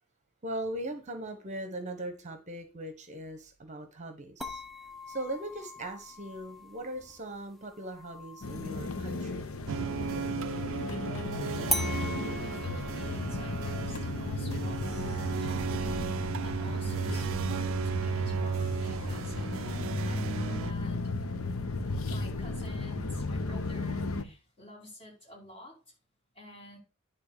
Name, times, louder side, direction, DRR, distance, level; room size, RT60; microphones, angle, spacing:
voice 1, 0.4-4.6 5.1-9.4, right 1 dB, 35° right, 7 dB, 1.1 m, -39 dB
sound 1, 4.4-10.0 11.7-16.7, equal, ahead, 0.9 m, -41 dB
sound 2, 8.4-24.2, left 2 dB, 75° left, 0.8 m, -35 dB
sound 3, 9.7-20.7, right 6 dB, 65° right, 0.4 m, -35 dB
voice 2, 11.5-21.1 22.0-25.9 26.3-26.8, left 1 dB, 25° left, -2 dB, 4.8 m, -50 dB
10.5 x 3.8 x 6.7 m, 0.31 s
head